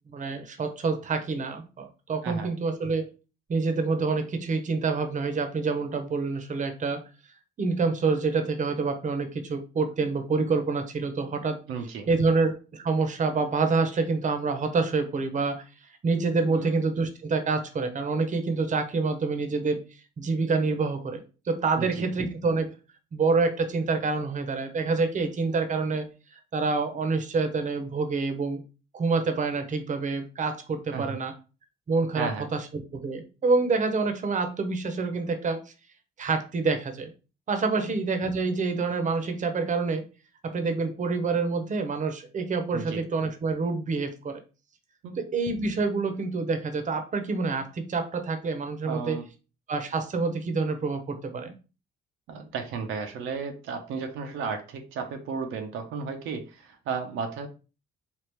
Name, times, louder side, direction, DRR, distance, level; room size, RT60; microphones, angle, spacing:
voice 1, 0.1-3.1 3.5-7.0 7.6-11.6 12.1-15.6 16.0-19.8 20.2-21.2 21.5-22.7 23.1-26.0 26.3-28.6 28.9-31.3 31.9-35.6 36.2-37.1 37.5-40.0 40.4-44.4 45.2-49.2 49.7-51.5, right 4 dB, 40° right, 7 dB, 0.7 m, -27 dB
voice 2, 11.7-12.1 16.5-16.8 21.8-22.1 30.9-31.2 32.2-32.5 37.8-38.0 42.7-43.0 45.0-45.2 48.8-49.2 52.3-57.5, right 5 dB, 85° right, 4 dB, 0.6 m, -34 dB
3.5 x 2.4 x 2.9 m, 0.32 s
cardioid pair, 90°, 20 cm